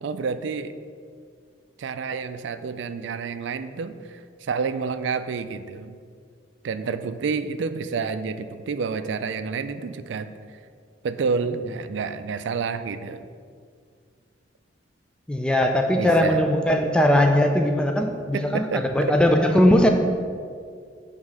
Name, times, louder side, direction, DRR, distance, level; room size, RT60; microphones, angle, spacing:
voice 1, 0.0-0.7 1.8-6.0 6.6-10.6 11.0-13.3 16.0-16.4 18.3-19.2, right 5 dB, 70° right, 11 dB, 0.4 m, -29 dB
voice 2, 15.3-19.9, left 1 dB, 5° left, 3 dB, 0.3 m, -19 dB
7.4 x 3.6 x 6.1 m, 2.2 s
head